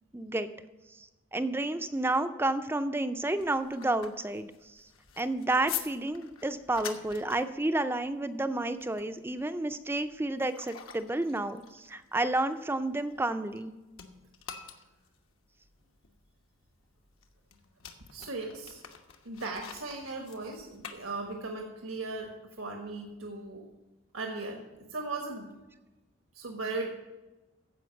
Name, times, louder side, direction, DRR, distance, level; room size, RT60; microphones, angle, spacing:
voice 1, 0.1-0.5 1.0-4.8 5.2-13.7, right 2 dB, 10° right, 10 dB, 0.4 m, -31 dB
sound 1, 3.1-13.6 13.9-21.6, left 9 dB, 75° left, 1.1 m, -46 dB
voice 2, 18.1-18.8 19.2-23.6 24.1-24.6 24.9-25.6 26.3-26.9, right 3 dB, 85° right, 2 dB, 1.4 m, -37 dB
15.0 x 5.3 x 7.0 m, 1.1 s
head